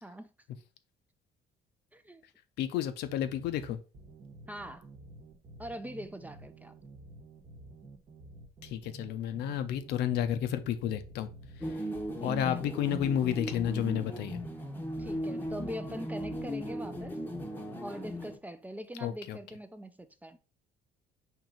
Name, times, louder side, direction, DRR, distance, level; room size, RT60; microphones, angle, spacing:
voice 1, 1.9-2.2 4.5-4.9 5.6-6.7 12.2-12.6 15.0-17.2 17.8-20.4, equal, 10° right, 0.4 m, -42 dB
voice 2, 2.6-3.8 8.6-11.3 11.6-11.8 12.2-14.4 19.0-19.4, left 10 dB, 80° left, 0.6 m, -31 dB
sound 1, 3.0-17.5, right 2 dB, 50° right, 1.0 m, -50 dB
sound 2, 11.6-18.4, equal, 10° left, 0.8 m, -37 dB
4.5 x 3.0 x 3.7 m
cardioid pair, 110°, 17 cm